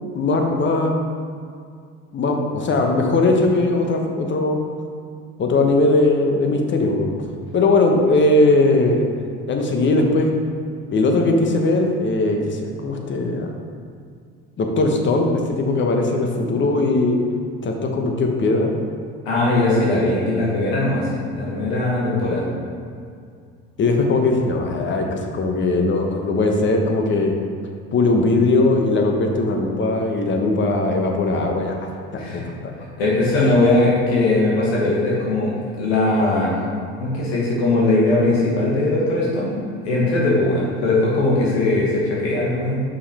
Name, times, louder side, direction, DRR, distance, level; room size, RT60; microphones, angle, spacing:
voice 1, 0.1-0.9 2.1-4.6 5.4-7.1 7.5-9.1 9.5-10.3 10.9-13.5 14.6-17.2 17.6-18.7 23.8-27.3 27.9-32.5 33.3-33.5, left 2 dB, 40° left, 2 dB, 1.0 m, -19 dB
voice 2, 19.2-22.4 32.2-32.4 33.0-36.6 37.0-39.6 39.8-42.8, left 2 dB, 90° left, -5 dB, 1.4 m, -19 dB
5.5 x 5.2 x 4.2 m, 2.3 s
hypercardioid pair, 75°, 30 cm